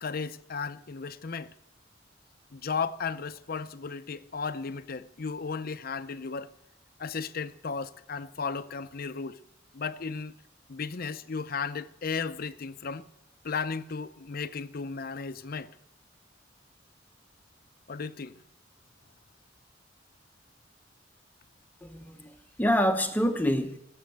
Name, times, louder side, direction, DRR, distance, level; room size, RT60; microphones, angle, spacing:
voice 1, 0.0-1.5 2.5-6.5 7.0-9.4 9.7-10.3 10.7-13.0 13.4-15.7 17.9-18.3, left 5 dB, 50° left, 0.6 m, -35 dB
voice 2, 21.8-23.8, equal, 10° left, 0.8 m, -27 dB
17.5 x 7.7 x 8.0 m
head